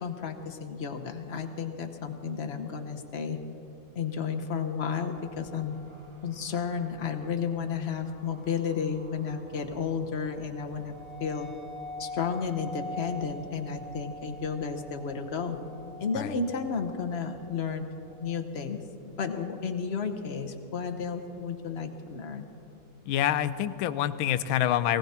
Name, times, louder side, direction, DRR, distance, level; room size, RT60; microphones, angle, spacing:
voice 1, 0.0-3.4 3.9-5.8 6.2-11.5 12.0-15.6 16.0-17.9 18.2-18.8 19.2-22.5, left 6 dB, 50° left, 5 dB, 0.8 m, -32 dB
sound 1, 5.1-18.4, left 1 dB, 45° right, 0.3 m, -46 dB
voice 2, 23.1-25.0, left 11 dB, 85° left, 13 dB, 1.4 m, -26 dB
19.0 x 17.0 x 4.3 m, 2.8 s
omnidirectional pair, 2.2 m